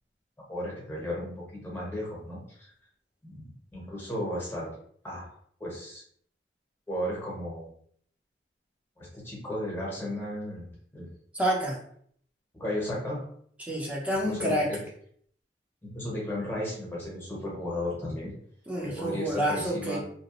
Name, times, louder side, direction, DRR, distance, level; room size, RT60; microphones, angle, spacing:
voice 1, 0.5-2.7 3.2-4.7 5.0-5.2 5.6-6.0 6.9-7.7 9.0-10.7 10.9-11.1 12.5-13.3 14.1-14.8 15.8-18.3 18.8-20.0, left 1 dB, 15° left, -4 dB, 1.0 m, -34 dB
voice 2, 11.3-11.8 13.6-14.7 18.7-20.0, equal, 10° right, -4 dB, 0.7 m, -28 dB
2.8 x 2.1 x 2.9 m, 0.62 s
head